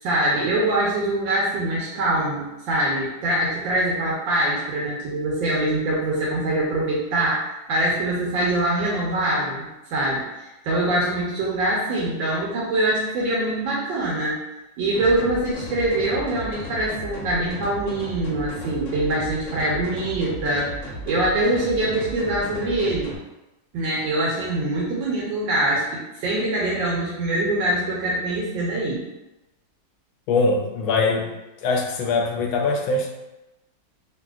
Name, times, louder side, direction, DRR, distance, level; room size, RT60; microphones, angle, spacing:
voice 1, 0.0-14.4 14.8-20.8 21.1-23.2 23.7-29.0, right 1 dB, 80° right, -5 dB, 1.4 m, -24 dB
sound 1, 14.9-23.1, equal, 60° left, 0.8 m, -35 dB
voice 2, 30.3-31.3 31.6-33.1, left 3 dB, 90° left, 1 dB, 1.4 m, -22 dB
3.2 x 2.7 x 2.3 m, 0.98 s
omnidirectional pair, 2.1 m